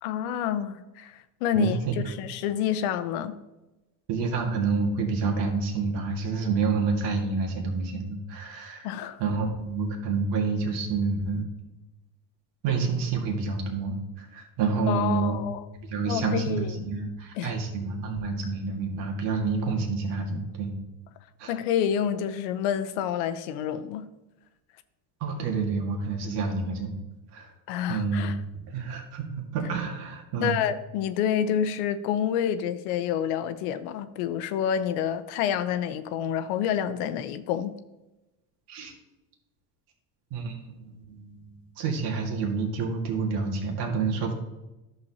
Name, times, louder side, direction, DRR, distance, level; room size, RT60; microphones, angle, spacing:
voice 1, 0.0-1.8 2.1-3.4 8.8-9.2 14.9-15.6 16.1-16.9 17.4-17.6 21.5-24.1 27.7-28.4 30.4-37.8, left 9 dB, 85° left, 0.8 m, -28 dB
voice 2, 1.5-2.0 4.1-8.9 9.2-11.5 12.6-15.4 15.8-20.7 21.4-21.5 25.2-26.9 27.3-27.5 27.9-28.4 28.7-30.6 38.7-38.9 40.3-41.4 41.8-44.3, right 4 dB, 65° right, 1.9 m, -28 dB
11.0 x 7.0 x 2.8 m
supercardioid pair, 105°, 44 cm